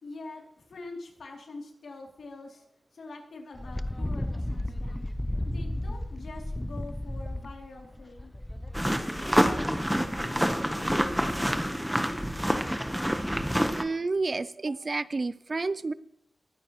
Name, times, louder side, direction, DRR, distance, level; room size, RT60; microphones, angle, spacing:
voice 1, 0.0-2.7 2.9-5.1 5.5-8.3 8.8-12.3, left 3 dB, 90° left, 0 dB, 2.9 m, -45 dB
Wind, 3.5-11.7, left 1 dB, 10° left, 0.5 m, -35 dB
sound 1, 8.7-13.8, equal, 5° right, 1.0 m, -27 dB
voice 2, 13.8-15.9, right 3 dB, 45° right, 16 dB, 0.5 m, -30 dB
21.0 x 9.5 x 3.1 m, 0.75 s
wide cardioid pair, 95°, 0 cm